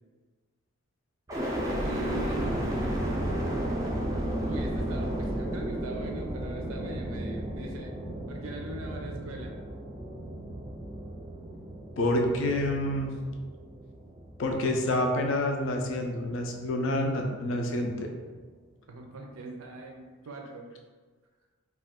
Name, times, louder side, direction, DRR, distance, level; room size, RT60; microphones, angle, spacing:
sound 1, 1.3-15.3 15.8-16.5, right 1 dB, 15° right, 0.3 m, -33 dB
voice 1, 1.8-2.9 4.5-8.0 8.3-9.6 18.9-20.7, right 2 dB, 80° right, 2 dB, 0.5 m, -41 dB
voice 2, 12.0-13.1 14.4-18.1, left 1 dB, 65° left, 3 dB, 0.4 m, -28 dB
2.4 x 2.3 x 3.5 m, 1.4 s
head